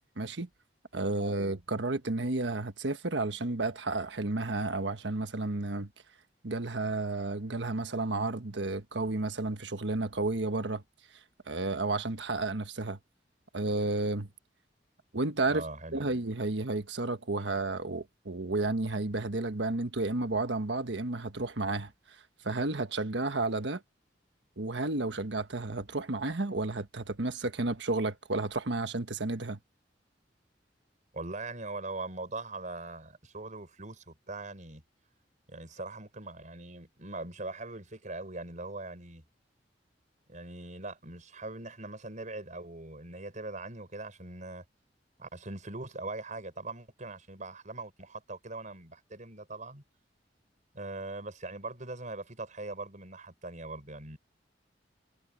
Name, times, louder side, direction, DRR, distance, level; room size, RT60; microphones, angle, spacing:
voice 1, 0.2-0.5 0.9-5.9 6.4-10.8 11.5-13.0 13.5-14.3 15.1-15.6 15.9-21.9 22.4-23.8 24.6-29.6, right 2 dB, 75° right, 1.4 m, -32 dB
voice 2, 15.5-16.1 31.1-34.8 35.5-39.2 40.3-44.6 45.2-49.8 50.7-54.2, right 2 dB, 45° right, 5.6 m, -41 dB
head